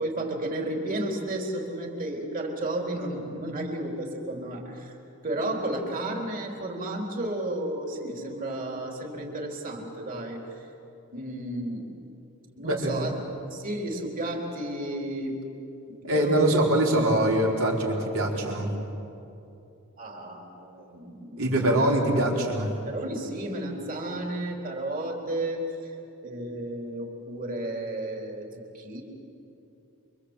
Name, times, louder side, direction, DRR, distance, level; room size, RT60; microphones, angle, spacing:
voice 1, 0.0-4.9 5.2-10.4 11.1-12.0 12.6-13.1 13.5-15.3 15.9-16.5 20.0-21.8 22.9-25.9 26.2-28.5 28.7-29.0, right 1 dB, 40° right, 1 dB, 4.0 m, -32 dB
voice 2, 12.6-13.1 16.0-18.7 21.4-22.7, right 1 dB, 65° right, -1 dB, 4.8 m, -23 dB
29.0 x 24.5 x 8.3 m, 2.8 s
head